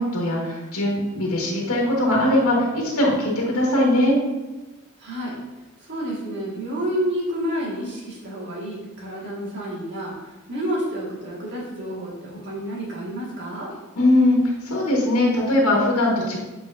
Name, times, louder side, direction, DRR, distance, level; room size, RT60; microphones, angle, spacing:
voice 1, 0.0-4.2 14.0-14.4 14.6-16.4, left 1 dB, 80° left, -3 dB, 1.6 m, -20 dB
voice 2, 5.0-5.4 5.9-13.7, equal, 55° right, -5 dB, 2.1 m, -29 dB
8.2 x 4.7 x 2.7 m, 1.1 s
head